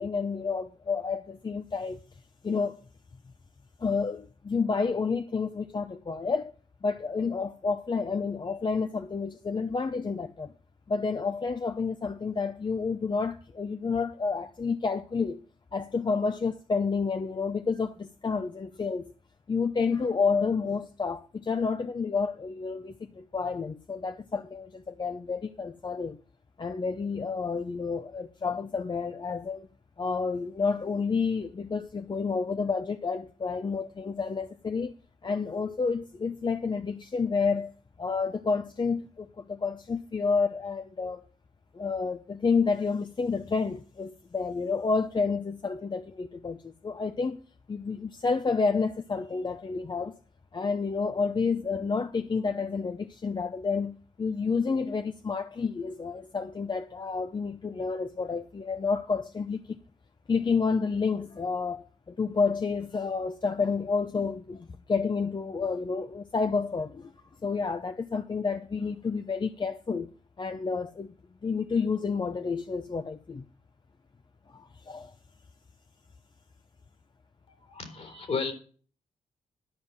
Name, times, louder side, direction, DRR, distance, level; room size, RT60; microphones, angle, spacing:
voice 1, 0.0-2.0 2.4-2.8 3.8-6.5 6.8-10.5 10.9-15.4 15.7-19.0 19.5-26.2 26.6-29.7 30.0-34.9 35.2-37.7 38.0-41.2 41.7-47.4 47.7-50.2 50.5-59.8 60.3-67.1 67.4-70.1 70.4-71.1 71.4-73.5 74.5-75.1, left 4 dB, 35° left, 0.7 m, -30 dB
voice 2, 77.5-78.5, left 5 dB, 55° left, 3.5 m, -33 dB
12.0 x 5.4 x 7.8 m
supercardioid pair, 50°, 13 cm